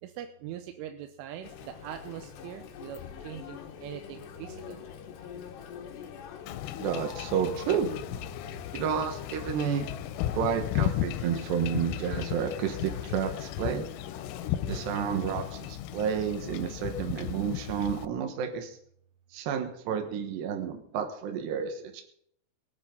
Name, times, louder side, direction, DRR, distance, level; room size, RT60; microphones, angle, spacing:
voice 1, 0.0-4.9, right 10 dB, 90° right, 6 dB, 3.4 m, -42 dB
Chatter, 1.4-15.7, left 8 dB, 70° left, 3.2 m, -45 dB
Wind / Ocean / Boat Water vehicle, 6.5-18.1, left 12 dB, 90° left, 3.3 m, -35 dB
voice 2, 6.8-7.9 8.7-9.9 10.3-13.9 14.7-18.8 19.3-22.0, right 7 dB, 70° right, 5 dB, 3.3 m, -31 dB
23.5 x 8.5 x 5.3 m, 0.67 s
omnidirectional pair, 5.6 m